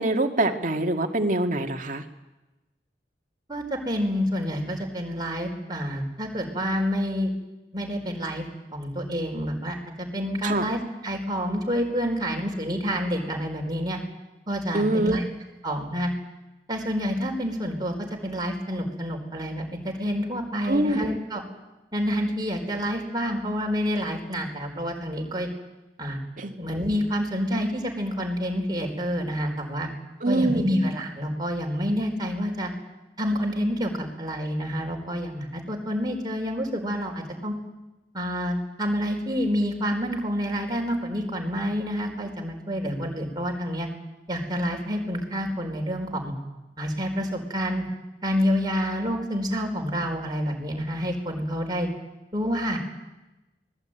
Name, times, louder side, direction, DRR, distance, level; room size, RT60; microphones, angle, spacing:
voice 1, 0.0-2.0 10.4-10.7 14.7-15.2 20.6-21.1 26.4-26.6 30.2-30.7, right 2 dB, 50° right, 4 dB, 2.0 m, -24 dB
voice 2, 3.5-7.3 7.7-8.4 8.7-14.0 14.5-15.2 15.6-16.1 16.7-17.9 18.2-21.4 21.9-25.5 26.0-26.2 26.6-29.9 30.3-32.7 33.2-37.5 38.1-43.9 44.3-46.3 46.8-47.8 48.2-51.9 52.3-52.8, equal, 25° right, 0 dB, 4.5 m, -28 dB
24.0 x 19.5 x 9.1 m, 1.1 s
head